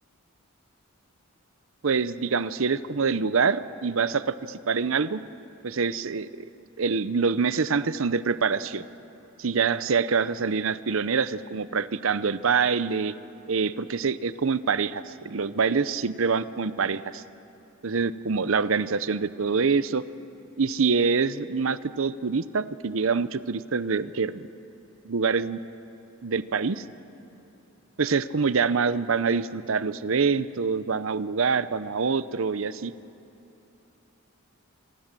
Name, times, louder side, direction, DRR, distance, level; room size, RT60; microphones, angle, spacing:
voice 1, 1.8-5.2 5.6-6.5 6.8-8.8 9.4-13.1 13.5-17.2 17.8-20.0 20.6-24.5 25.0-25.6 26.2-26.8 28.0-32.9, right 5 dB, 70° right, 15 dB, 0.7 m, -25 dB
25.5 x 25.5 x 7.5 m, 3.0 s
head